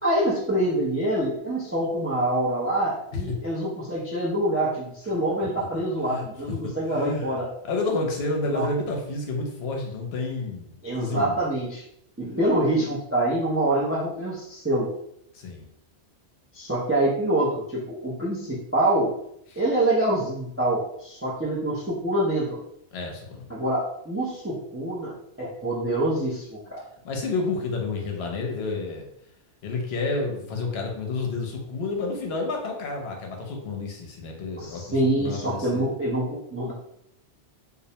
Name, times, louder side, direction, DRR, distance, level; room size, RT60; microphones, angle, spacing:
voice 1, 0.0-7.5 8.5-8.6 10.8-11.8 12.2-14.9 16.5-19.1 19.6-22.6 23.5-25.1 25.4-26.8 34.6-36.7, right 1 dB, 25° right, -6 dB, 0.3 m, -25 dB
voice 2, 6.1-6.5 6.9-7.4 7.6-10.7 11.0-11.4 15.3-15.7 19.5-19.6 22.9-23.5 27.0-29.1 29.6-35.9, left 3 dB, 70° left, 1 dB, 0.8 m, -30 dB
2.4 x 2.1 x 2.7 m, 0.75 s
omnidirectional pair, 1.2 m